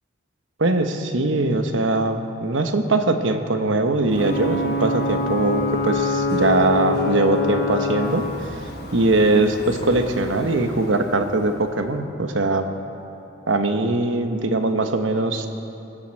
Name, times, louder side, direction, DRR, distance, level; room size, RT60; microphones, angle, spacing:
voice 1, 0.6-8.2 8.9-12.6 13.5-15.5, right 2 dB, 85° right, 7 dB, 1.0 m, -21 dB
Ocean / Boat Water vehicle / Alarm, 4.1-11.7, left 2 dB, 55° left, 1.4 m, -26 dB
19.0 x 7.7 x 7.5 m, 2.8 s
head